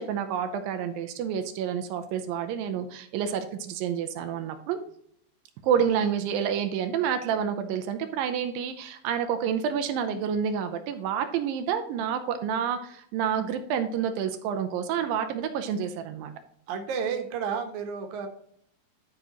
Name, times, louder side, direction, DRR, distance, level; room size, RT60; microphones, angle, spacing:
voice 1, 0.0-4.8 5.6-16.3, right 8 dB, 90° right, 7 dB, 2.4 m, -29 dB
voice 2, 16.7-18.3, right 6 dB, 65° right, 5 dB, 2.3 m, -31 dB
11.5 x 5.0 x 3.0 m, 0.66 s
omnidirectional pair, 4.1 m